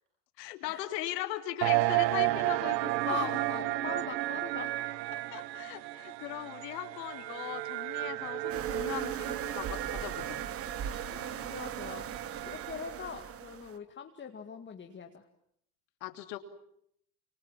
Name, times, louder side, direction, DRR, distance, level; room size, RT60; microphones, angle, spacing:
voice 1, 0.4-3.4 3.7-3.8 5.1-10.4 16.0-16.4, left 14 dB, 80° left, 7 dB, 3.2 m, -39 dB
sound 1, 1.6-13.0, right 17 dB, 80° right, 1.2 m, -33 dB
voice 2, 3.1-4.9 11.1-12.1 12.4-15.2, left 6 dB, 20° left, 5 dB, 2.1 m, -43 dB
sound 2, 8.5-13.8, right 8 dB, 30° right, 1.3 m, -39 dB
29.0 x 26.5 x 7.5 m, 0.72 s
supercardioid pair, 110°, 49 cm